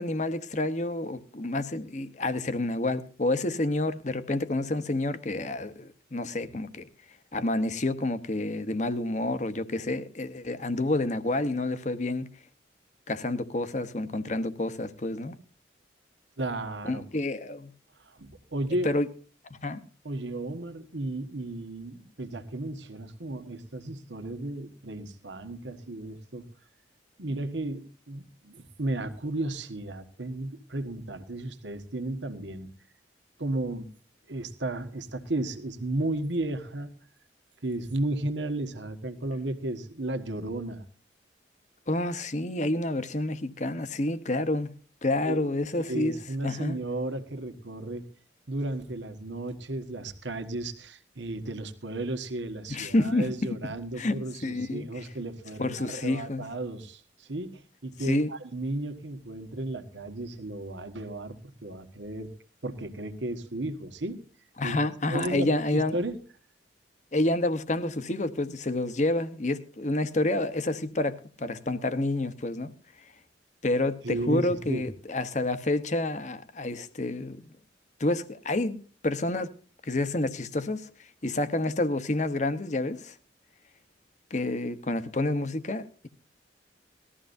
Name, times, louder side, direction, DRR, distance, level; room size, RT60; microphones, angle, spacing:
voice 1, 0.0-6.9 7.3-12.3 13.1-15.4 16.8-17.7 18.8-19.1 19.6-19.8 41.9-44.7 45.0-46.8 52.7-53.3 54.0-54.9 55.6-56.4 58.0-58.3 64.6-66.0 67.1-72.7 73.6-77.5 78.0-78.8 79.0-79.5 79.9-80.9 81.2-83.1 84.3-86.1, left 2 dB, 40° left, 0.9 m, -29 dB
voice 2, 16.4-17.0 18.1-18.9 20.0-26.5 27.2-32.7 33.4-33.9 34.3-36.9 37.6-40.8 45.2-45.5 45.9-48.1 48.5-61.4 61.6-62.3 62.6-64.2 64.6-64.8 65.1-66.2 74.0-74.8, right 2 dB, 80° right, 1.5 m, -34 dB
19.5 x 14.0 x 2.6 m
head